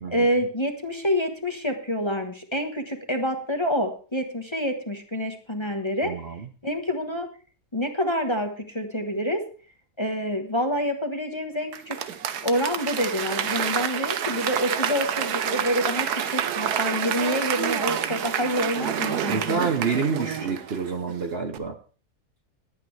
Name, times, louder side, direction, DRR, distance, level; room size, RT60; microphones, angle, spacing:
voice 1, 0.1-6.1 6.6-7.3 7.7-9.4 10.0-12.0 12.4-19.6, equal, 20° left, 4 dB, 1.2 m, -27 dB
voice 2, 6.0-6.5 19.3-21.8, right 5 dB, 45° right, 6 dB, 1.0 m, -28 dB
Applause / Crowd, 11.7-21.2 21.5-21.6, right 9 dB, 85° right, 1.4 m, -28 dB
19.5 x 8.6 x 3.3 m, 0.39 s
omnidirectional pair, 1.6 m